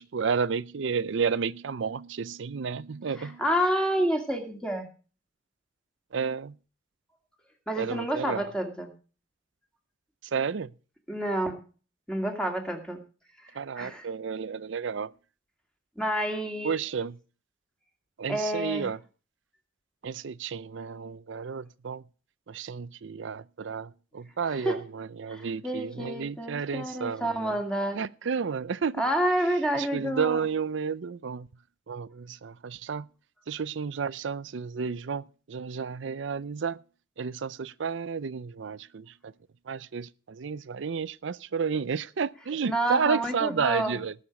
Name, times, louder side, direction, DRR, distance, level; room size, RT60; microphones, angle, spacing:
voice 1, 0.0-3.4 6.1-6.6 7.8-8.5 10.3-10.7 13.5-15.1 16.6-17.2 18.2-19.0 20.0-22.0 22.5-27.6 27.9-29.0 29.7-31.5 31.9-33.1 33.5-36.8 37.2-39.1 39.7-44.1, right 6 dB, 75° right, 0.5 m, -31 dB
voice 2, 3.2-4.9 7.7-8.9 11.1-11.6 12.1-13.0 13.8-14.1 16.0-16.8 18.3-18.9 24.5-24.8 25.3-28.0 29.0-30.4 42.6-44.0, right 1 dB, 5° left, 2.2 m, -29 dB
19.0 x 6.5 x 5.2 m
head